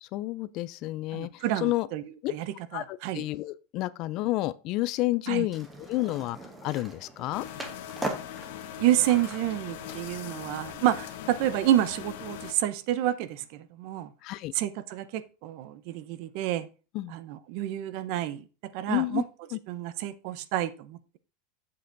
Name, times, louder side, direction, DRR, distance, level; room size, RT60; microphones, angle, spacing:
voice 1, 0.0-1.9 2.2-2.3 2.7-7.5 14.2-14.5 16.9-17.1 18.9-19.2 19.5-19.6, left 18 dB, 40° left, 0.4 m, -30 dB
voice 2, 1.1-2.0 2.3-2.5 2.7-3.2 5.3-5.5 8.8-14.1 14.6-16.7 17.1-18.4 18.7-19.2 19.7-21.2, right 13 dB, 50° right, 0.7 m, -29 dB
Skateboard, 5.5-10.7, right 2 dB, 5° right, 1.2 m, -41 dB
sound 1, 7.3-12.5, left 10 dB, 70° left, 1.2 m, -40 dB
7.5 x 6.7 x 3.9 m
supercardioid pair, 170°, 0 cm